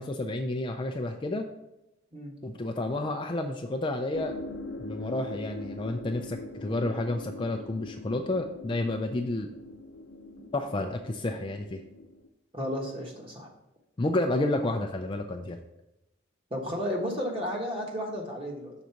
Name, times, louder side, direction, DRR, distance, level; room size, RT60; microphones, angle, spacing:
voice 1, 0.0-1.4 2.4-4.4 4.8-9.5 10.5-11.8 14.0-15.6, left 2 dB, 25° left, 4 dB, 0.3 m, -30 dB
sound 1, 4.1-12.3, left 2 dB, 60° left, 0.7 m, -42 dB
voice 2, 12.5-13.5 16.5-18.7, equal, 25° right, 0 dB, 1.2 m, -33 dB
6.3 x 4.0 x 5.8 m, 0.89 s
head